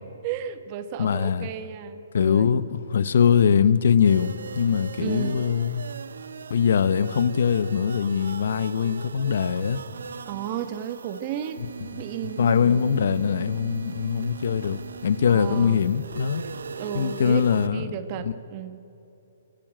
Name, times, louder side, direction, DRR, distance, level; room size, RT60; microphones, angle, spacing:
voice 1, 0.2-2.6 5.0-5.4 10.2-11.6 12.0-13.5 15.3-15.8 16.8-18.8, right 9 dB, 30° right, 1.2 m, -34 dB
voice 2, 1.0-1.5 2.1-5.8 6.5-9.8 11.9-12.0 12.4-16.4 16.9-17.9 18.2-18.3, left 7 dB, 65° left, 0.8 m, -22 dB
sound 1, 4.0-17.7, right 6 dB, 85° right, 0.7 m, -39 dB
23.5 x 12.5 x 9.1 m
hypercardioid pair, 160°, 0 cm